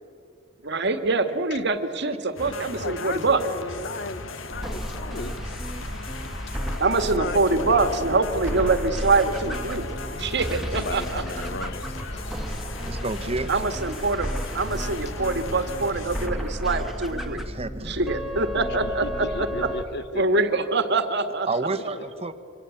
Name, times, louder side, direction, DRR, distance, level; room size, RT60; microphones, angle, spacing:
voice 1, 0.6-3.4 6.8-9.8 10.2-11.2 13.5-14.3 14.5-17.4 17.9-19.7 20.2-21.5, right 3 dB, 60° right, 9 dB, 1.9 m, -24 dB
sound 1, 2.4-16.3, left 2 dB, 85° left, 1.9 m, -37 dB
voice 2, 2.7-5.4 6.5-8.0 9.9-12.5 18.5-20.6 21.5-22.3, left 3 dB, 60° left, 13 dB, 1.1 m, -37 dB
sound 2, 4.5-19.8, equal, ahead, 2.1 m, -33 dB
Squeak / Sink (filling or washing) / Trickle dribble, 9.3-17.2, left 2 dB, 35° left, 5.5 m, -51 dB
voice 3, 12.8-13.5 17.3-18.0 21.5-22.3, right 3 dB, 30° right, 9 dB, 1.4 m, -29 dB
26.5 x 24.5 x 8.5 m, 2.4 s
head